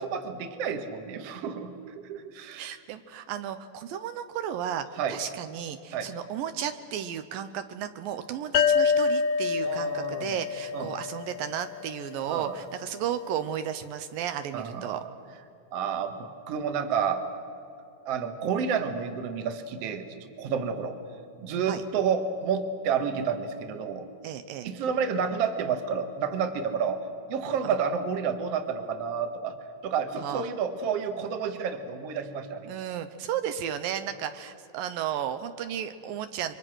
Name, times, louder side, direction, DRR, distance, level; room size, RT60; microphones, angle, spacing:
voice 1, 0.0-2.8 5.0-5.2 5.9-6.1 9.6-10.4 10.7-11.0 12.3-12.6 14.5-15.1 15.7-17.2 18.1-21.0 21.4-24.1 24.6-27.0 27.3-29.5 29.8-32.7, right 6 dB, 55° right, 7 dB, 2.2 m, -30 dB
voice 2, 2.5-15.0 21.6-21.8 24.2-24.7 30.2-30.5 32.7-36.5, right 9 dB, 80° right, 9 dB, 2.6 m, -34 dB
sound 1, 8.5-12.0, left 6 dB, 75° left, 2.2 m, -27 dB
29.0 x 24.0 x 6.3 m, 2.6 s
omnidirectional pair, 4.1 m